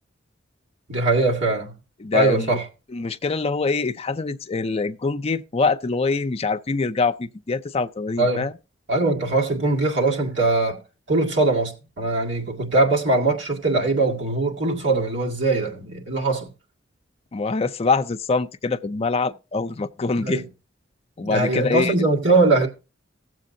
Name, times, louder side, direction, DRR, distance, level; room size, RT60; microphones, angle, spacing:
voice 1, 0.9-1.7 2.1-2.6 8.2-8.5 8.9-10.8 11.1-16.5 20.1-20.4 21.2-22.7, right 2 dB, 70° right, 2.0 m, -21 dB
voice 2, 2.0-2.6 2.9-8.5 17.3-20.4 21.2-22.1, left 4 dB, 30° left, 0.5 m, -24 dB
16.5 x 7.6 x 2.7 m
head